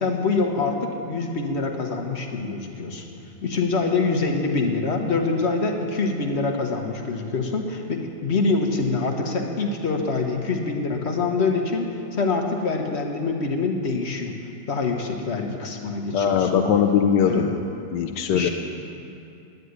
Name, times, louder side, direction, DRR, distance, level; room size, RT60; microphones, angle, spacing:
voice 1, 0.0-3.1 3.4-14.4 14.7-16.6 17.2-17.6 18.3-18.5, left 3 dB, 40° left, 3 dB, 1.3 m, -25 dB
voice 2, 16.1-17.5 17.9-18.5, left 8 dB, 70° left, 5 dB, 1.2 m, -20 dB
11.0 x 9.5 x 9.5 m, 2.7 s
omnidirectional pair, 2.0 m